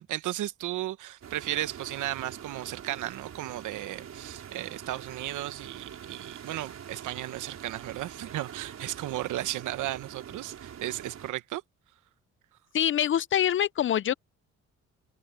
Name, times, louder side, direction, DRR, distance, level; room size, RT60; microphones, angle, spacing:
voice 1, 0.0-11.6, right 14 dB, 80° right, 1.1 m, -35 dB
sound 1, 1.2-11.3, right 8 dB, 60° right, 4.8 m, -44 dB
voice 2, 12.7-14.1, left 10 dB, 40° left, 0.4 m, -25 dB
cardioid pair, 90°, 30 cm